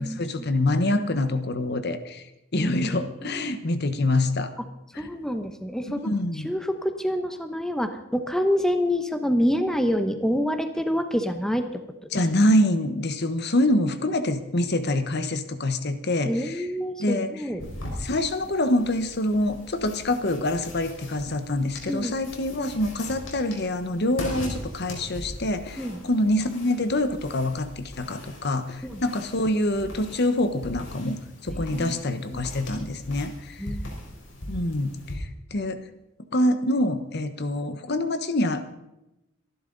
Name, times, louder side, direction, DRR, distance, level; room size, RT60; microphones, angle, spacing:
voice 1, 0.0-2.2 2.5-4.5 4.9-5.1 5.9-6.5 12.1-16.7 17.0-17.3 18.0-33.6 34.5-35.8 36.3-38.7, left 1 dB, 55° left, 10 dB, 1.1 m, -25 dB
voice 2, 2.6-3.5 5.0-6.1 6.4-12.1 16.3-17.7 21.9-22.2 25.8-26.0 28.8-29.0 31.7-32.0 32.3-32.4 33.6-33.8, equal, 5° left, 7 dB, 0.9 m, -27 dB
sound 1, 17.6-35.2, left 1 dB, 75° left, 4.8 m, -40 dB
25.5 x 11.0 x 4.0 m, 0.90 s
head